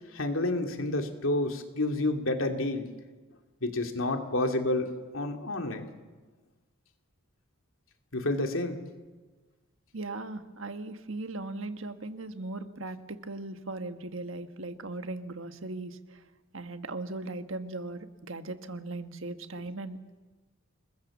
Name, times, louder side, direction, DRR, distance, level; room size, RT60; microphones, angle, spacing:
voice 1, 0.1-2.9 3.6-5.9 8.1-8.8, left 2 dB, 75° left, 4 dB, 2.7 m, -29 dB
voice 2, 9.9-16.2 16.5-20.2, right 2 dB, 70° right, 8 dB, 1.5 m, -38 dB
29.0 x 21.0 x 7.3 m, 1.3 s
head